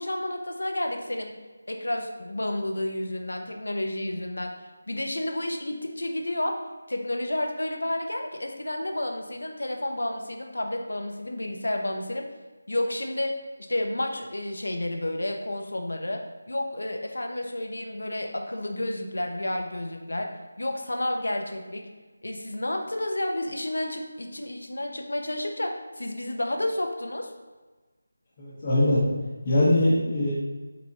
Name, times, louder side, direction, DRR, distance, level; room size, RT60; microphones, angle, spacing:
voice 1, 0.0-1.4 1.7-4.6 4.9-6.6 6.9-12.3 12.7-21.9 22.2-27.3, left 1 dB, 90° left, 3 dB, 0.9 m, -31 dB
voice 2, 28.4-29.0 29.4-30.3, left 1 dB, 25° left, -12 dB, 1.3 m, -22 dB
7.6 x 4.2 x 3.0 m, 1.3 s
figure-of-eight pair, 175°, 0 cm